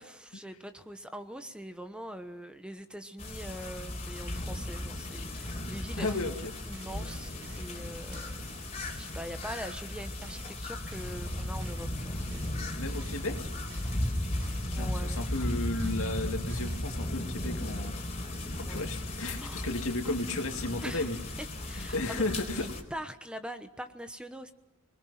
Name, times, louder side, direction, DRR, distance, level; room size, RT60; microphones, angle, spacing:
voice 1, 0.0-8.4 9.0-12.1 14.7-15.2 18.5-19.0 19.4-19.7 20.8-21.1 21.6-22.2 22.5-24.5, equal, 5° right, 8 dB, 1.1 m, -43 dB
sound 1, 3.2-22.8, left 1 dB, 30° left, 4.0 m, -36 dB
sound 2, 5.7-16.8, right 2 dB, 65° right, 5.6 m, -52 dB
voice 2, 6.0-6.4 12.8-13.5 14.6-18.0 18.5-21.2 21.7-22.7, left 2 dB, 65° left, 4 dB, 2.7 m, -34 dB
29.5 x 21.5 x 5.9 m, 0.93 s
head